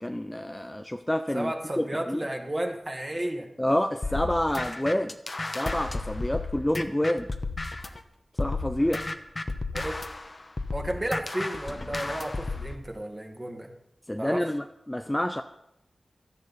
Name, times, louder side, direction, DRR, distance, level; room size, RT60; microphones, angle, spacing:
voice 1, 0.0-1.5 1.8-2.2 3.6-5.2 5.5-7.3 8.4-9.0 14.1-15.4, left 1 dB, 10° left, 7 dB, 0.6 m, -28 dB
voice 2, 1.3-3.5 9.7-10.0 10.7-13.7 14.2-14.5, right 1 dB, 20° right, 3 dB, 1.8 m, -33 dB
sound 1, 4.0-8.0 8.4-12.8, left 3 dB, 35° left, 1.0 m, -33 dB
17.0 x 13.5 x 4.2 m, 0.83 s
wide cardioid pair, 105°, 0 cm